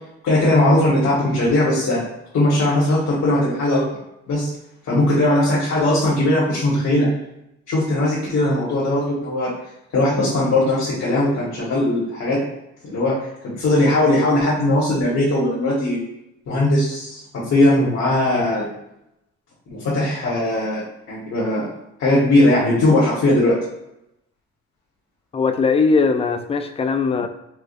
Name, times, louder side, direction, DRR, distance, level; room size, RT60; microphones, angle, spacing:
voice 1, 0.2-2.1 2.3-3.8 4.3-4.5 4.9-7.1 7.7-9.5 9.9-12.4 12.8-13.2 13.4-16.0 16.5-18.7 19.7-21.6 22.0-23.5, left 1 dB, 60° left, -7 dB, 1.4 m, -19 dB
voice 2, 25.3-27.3, left 4 dB, 20° left, 7 dB, 0.3 m, -19 dB
4.7 x 2.4 x 2.5 m, 0.84 s
cardioid pair, 90°, 30 cm